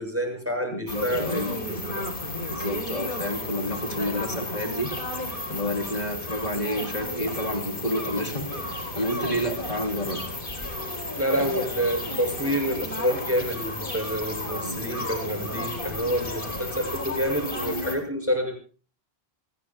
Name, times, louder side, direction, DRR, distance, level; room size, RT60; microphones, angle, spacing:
voice 1, 0.0-1.8 11.2-18.6, equal, 15° right, 3 dB, 6.6 m, -28 dB
voice 2, 0.7-1.6 2.5-4.9 5.5-8.5 8.9-10.2 11.3-11.6 16.2-16.3, equal, 40° left, 4 dB, 3.8 m, -30 dB
sound 1, 0.9-18.0, left 1 dB, 60° left, 3.9 m, -33 dB
28.0 x 19.5 x 2.3 m, 0.38 s
omnidirectional pair, 1.0 m